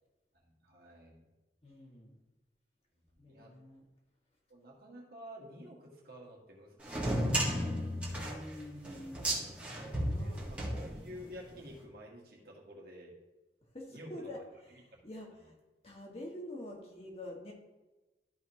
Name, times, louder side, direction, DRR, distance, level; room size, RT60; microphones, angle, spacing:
voice 1, 0.6-1.2 3.1-3.5 4.5-7.8 10.2-13.1 13.9-14.4 14.9-15.0, equal, 60° right, -1 dB, 1.7 m, -51 dB
voice 2, 1.6-2.2 3.2-3.8 8.2-10.5 13.7-15.5 15.8-17.5, left 1 dB, 35° left, -2 dB, 1.7 m, -47 dB
sound 1, 6.8-11.4, equal, 10° right, 1.5 m, -34 dB
12.5 x 5.0 x 2.9 m, 1.1 s
head